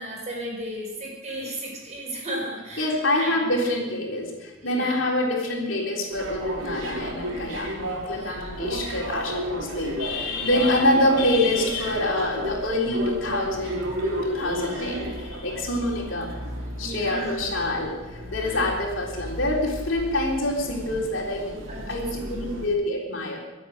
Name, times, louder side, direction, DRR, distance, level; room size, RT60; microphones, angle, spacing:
voice 1, 0.0-3.4 4.6-5.0 8.1-8.6 16.8-17.4 18.3-18.6 21.7-22.7, right 1 dB, 35° right, -2 dB, 5.3 m, -35 dB
voice 2, 2.8-16.4 16.8-23.4, left 1 dB, 70° left, -1 dB, 3.6 m, -26 dB
sound 1, 6.1-22.7, right 1 dB, 80° right, 3.4 m, -33 dB
23.5 x 8.4 x 6.5 m, 1.1 s
head